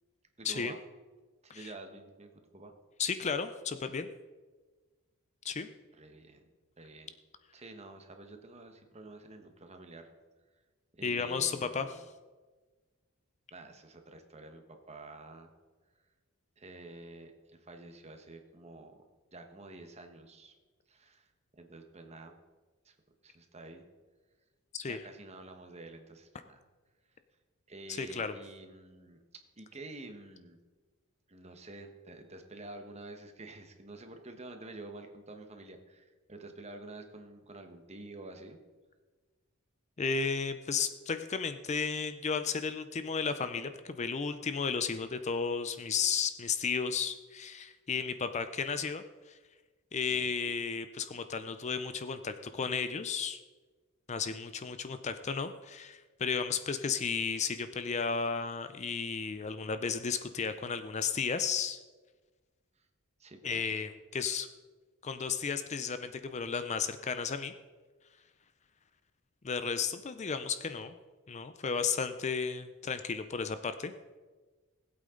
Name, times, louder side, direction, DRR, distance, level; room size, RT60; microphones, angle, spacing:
voice 1, 0.4-0.8 1.4-2.7 5.9-6.5 6.8-7.1 7.5-10.1 11.0-12.1 13.5-15.5 16.6-19.0 19.3-20.5 20.9-22.4 22.8-22.9 23.2-23.9 24.9-26.6 27.7-30.6 31.3-38.6 50.1-50.4 63.2-63.8, right 2 dB, 30° right, 5 dB, 1.3 m, -49 dB
voice 2, 3.0-4.1 5.4-5.7 11.0-12.0 24.7-25.0 27.9-28.3 40.0-49.4 49.9-53.4 54.1-61.8 63.4-64.5 65.0-67.5 69.4-70.9 71.3-73.9, left 5 dB, 30° left, 10 dB, 0.5 m, -33 dB
19.5 x 8.5 x 3.8 m, 1.3 s
head